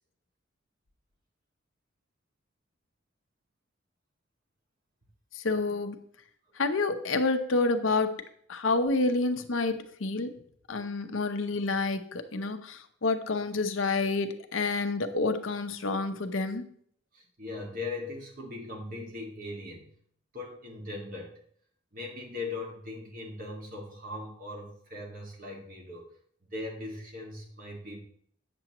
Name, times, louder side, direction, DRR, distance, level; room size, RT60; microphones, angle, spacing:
voice 1, 5.3-6.0 6.6-8.2 8.5-10.3 10.7-16.7, left 3 dB, 85° left, 8 dB, 0.7 m, -28 dB
voice 2, 17.1-20.0 20.3-21.4 21.9-26.1 26.5-28.0, left 2 dB, 45° right, 0 dB, 1.9 m, -39 dB
8.8 x 6.9 x 3.0 m, 0.62 s
head